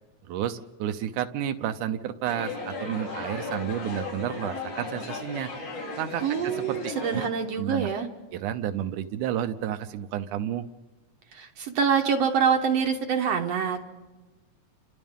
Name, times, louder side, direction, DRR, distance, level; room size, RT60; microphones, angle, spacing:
voice 1, 0.3-5.5 6.0-7.2 7.6-7.9 8.3-10.6, right 10 dB, 80° right, 8 dB, 2.3 m, -31 dB
sound 1, 2.2-7.3, left 3 dB, 70° left, 5.0 m, -36 dB
voice 2, 6.2-8.1 11.3-13.9, right 6 dB, 65° right, 5 dB, 1.9 m, -25 dB
29.5 x 26.5 x 3.7 m, 1.2 s
omnidirectional pair, 3.6 m